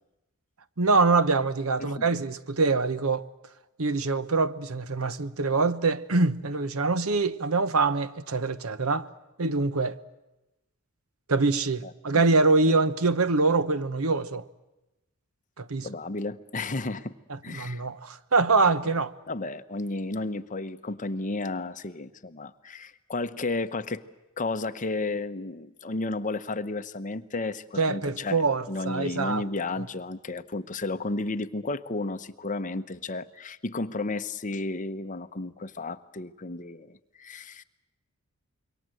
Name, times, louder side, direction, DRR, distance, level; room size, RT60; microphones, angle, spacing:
voice 1, 0.8-3.3 3.8-9.1 9.4-10.0 11.3-14.4 15.6-15.9 17.3-19.1 27.8-29.4, right 3 dB, 90° right, 1.0 m, -24 dB
voice 2, 15.8-17.1 17.4-17.8 19.3-24.0 24.4-28.4 28.7-37.6, left 2 dB, 35° left, 0.9 m, -33 dB
26.5 x 23.5 x 7.8 m
head